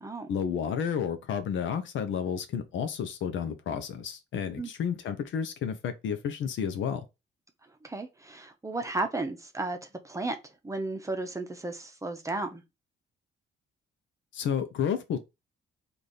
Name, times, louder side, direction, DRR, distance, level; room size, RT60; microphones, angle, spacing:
voice 1, 0.3-7.0 14.3-15.2, left 7 dB, 75° left, 0.7 m, -31 dB
voice 2, 7.8-9.8 10.0-10.4 10.6-12.6, right 2 dB, 15° right, 0.8 m, -33 dB
3.3 x 2.6 x 4.1 m
cardioid pair, 90°, 20 cm